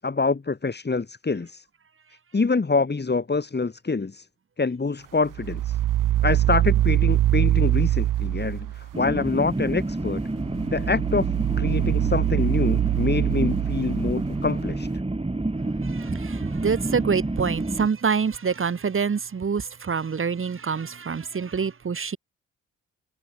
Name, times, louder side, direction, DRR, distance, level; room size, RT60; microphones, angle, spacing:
voice 1, 0.0-1.6 2.3-4.3 4.6-5.8 6.2-10.2 10.7-11.3 11.6-14.9, left 4 dB, 30° left, 4.4 m, -26 dB
sound 1, 5.3-9.0 10.3-14.7, right 13 dB, 75° right, 1.6 m, -24 dB
sound 2, 8.9-17.9, right 2 dB, 20° right, 4.7 m, -28 dB
voice 2, 15.8-22.2, right 6 dB, 40° right, 1.9 m, -26 dB
supercardioid pair, 50°, 32 cm